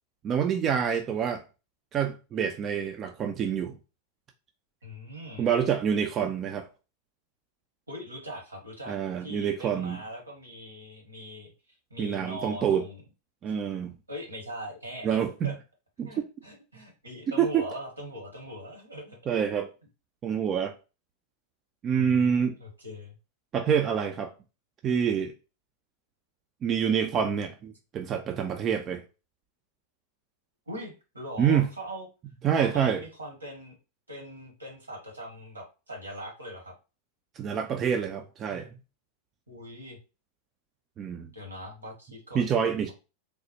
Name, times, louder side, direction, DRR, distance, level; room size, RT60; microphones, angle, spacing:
voice 1, 0.2-1.4 1.9-3.8 5.4-6.7 8.9-10.0 12.0-12.8 13.4-13.9 15.0-15.5 16.0-16.2 17.4-17.6 19.3-19.7 20.2-20.7 21.8-22.6 23.5-24.3 24.8-25.3 26.6-29.0 31.4-31.7 32.4-33.0 37.4-38.7 41.0-41.3 42.3-42.9, right 8 dB, 30° right, 0.4 m, -27 dB
voice 2, 4.8-5.5 7.9-11.5 11.9-13.0 14.1-15.2 15.4-15.5 16.0-19.2 21.9-23.1 30.7-32.1 32.6-33.8 34.1-36.7 39.5-40.0 41.3-42.4, equal, 80° right, 1.2 m, -41 dB
3.2 x 2.0 x 2.8 m
figure-of-eight pair, 90°, 0 cm